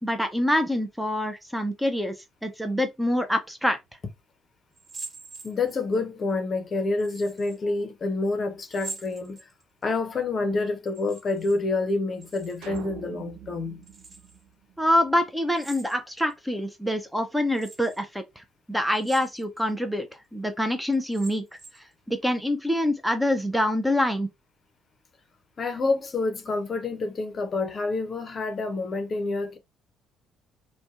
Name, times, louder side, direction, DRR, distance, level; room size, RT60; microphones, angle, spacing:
voice 1, 0.0-2.2 2.4-3.8 14.8-20.1 20.3-24.3, left 1 dB, 5° right, 0.6 m, -26 dB
sound 1, 4.7-6.0 7.0-7.6 8.7-9.8 10.9-11.6 11.9-12.8 13.8-14.4 15.5-16.3 16.9-17.0 17.5-18.0 18.9-19.7 20.1-20.2 20.9-21.9, right 3 dB, 40° right, 1.4 m, -44 dB
voice 2, 5.4-9.5 9.8-13.9 25.6-29.6, left 3 dB, 45° left, 0.6 m, -28 dB
sound 2, 12.6-15.1, right 8 dB, 75° right, 0.5 m, -43 dB
2.6 x 2.2 x 2.4 m
hypercardioid pair, 55°, 0 cm